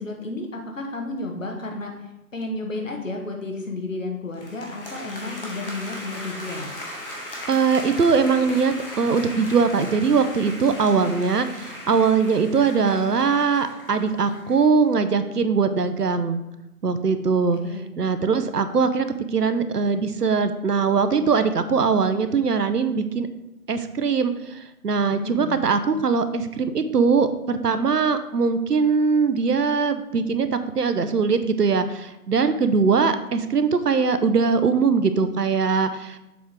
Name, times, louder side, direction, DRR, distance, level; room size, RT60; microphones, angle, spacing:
voice 1, 0.0-1.9 2.3-6.7 17.6-17.8 25.1-25.6, left 2 dB, 55° left, 2 dB, 1.4 m, -32 dB
sound 1, 4.3-14.7, left 1 dB, 35° left, 1.3 m, -38 dB
voice 2, 7.5-16.4 16.8-17.6 18.0-19.1 19.3-23.3 23.7-30.5 30.7-36.2, right 5 dB, 90° right, 10 dB, 0.8 m, -21 dB
7.1 x 3.7 x 4.6 m, 0.92 s
figure-of-eight pair, 165°, 46 cm